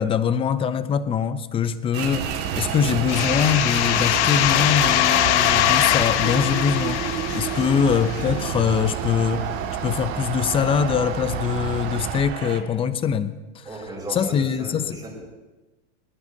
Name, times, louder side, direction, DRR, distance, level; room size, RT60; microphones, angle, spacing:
voice 1, 0.0-9.5 9.8-15.0, left 7 dB, 15° left, 13 dB, 0.5 m, -23 dB
sound 1, 1.9-12.6, right 8 dB, 40° right, 1.9 m, -32 dB
Bus / Idling, 2.2-12.2, right 9 dB, 65° right, 1.9 m, -32 dB
sound 2, 3.1-8.6, left 15 dB, 80° left, 0.7 m, -22 dB
voice 2, 7.5-7.8 13.6-15.3, right 1 dB, 10° right, -3 dB, 5.1 m, -36 dB
22.0 x 18.0 x 2.7 m, 1.2 s
supercardioid pair, 145°, 35 cm